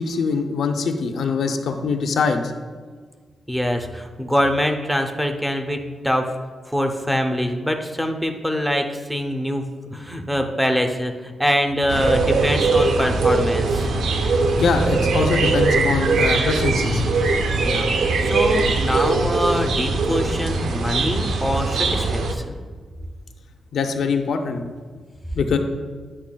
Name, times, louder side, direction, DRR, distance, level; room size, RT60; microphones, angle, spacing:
voice 1, 0.0-2.4 14.6-17.1 23.7-24.6 25.3-25.6, left 5 dB, 75° left, 5 dB, 0.5 m, -23 dB
voice 2, 3.5-6.3 6.7-9.6 9.9-14.0 17.6-17.9 18.2-22.6, equal, 5° right, 4 dB, 0.5 m, -24 dB
sound 1, 11.9-22.3, right 3 dB, 80° right, 0.5 m, -21 dB
8.5 x 5.5 x 2.2 m, 1.5 s
wide cardioid pair, 125°, 0 cm